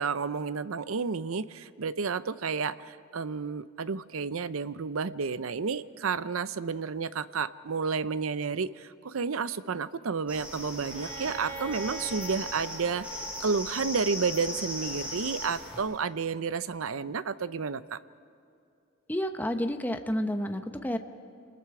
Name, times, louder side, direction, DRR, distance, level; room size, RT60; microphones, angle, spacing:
voice 1, 0.0-18.0, right 5 dB, 75° right, 15 dB, 0.6 m, -31 dB
sound 1, 10.3-15.8, left 1 dB, 5° right, 4.9 m, -38 dB
Bowed string instrument, 10.9-14.7, right 4 dB, 35° right, 2.7 m, -44 dB
voice 2, 19.1-21.0, equal, 10° left, 6 dB, 0.8 m, -30 dB
29.0 x 20.0 x 4.9 m, 2.6 s
head